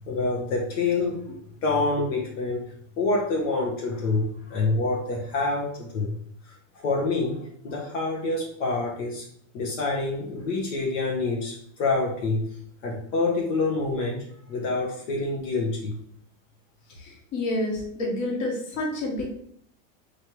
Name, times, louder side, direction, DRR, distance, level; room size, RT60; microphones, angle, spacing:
voice 1, 0.1-1.2 1.6-2.6 3.0-6.1 6.7-9.2 9.5-12.5 12.8-15.9, left 3 dB, 75° left, -2 dB, 1.3 m, -27 dB
voice 2, 17.0-19.3, left 1 dB, 50° left, -2 dB, 1.5 m, -29 dB
4.6 x 3.1 x 3.2 m, 0.65 s
supercardioid pair, 150°, 39 cm